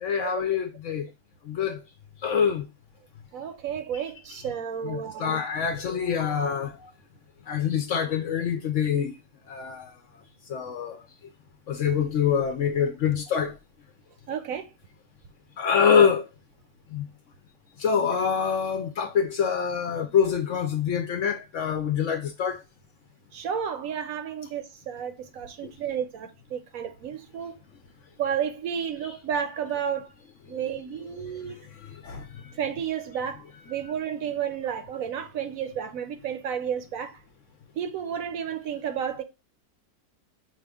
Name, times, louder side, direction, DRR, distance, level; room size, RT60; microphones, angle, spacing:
voice 1, 0.0-1.1 1.5-1.8 2.2-2.7 4.8-6.9 7.5-9.2 9.5-9.9 10.5-11.0 11.7-13.6 15.6-16.3 16.9-17.1 17.8-22.6 25.6-25.7 30.5-30.6 31.9-32.5, left 7 dB, 65° left, 0.8 m, -25 dB
voice 2, 3.3-5.4 14.3-14.7 23.3-27.6 28.2-30.1 30.5-31.7 32.6-37.2 37.8-39.2, right 8 dB, 70° right, 0.9 m, -32 dB
4.8 x 2.5 x 3.4 m
omnidirectional pair, 1.7 m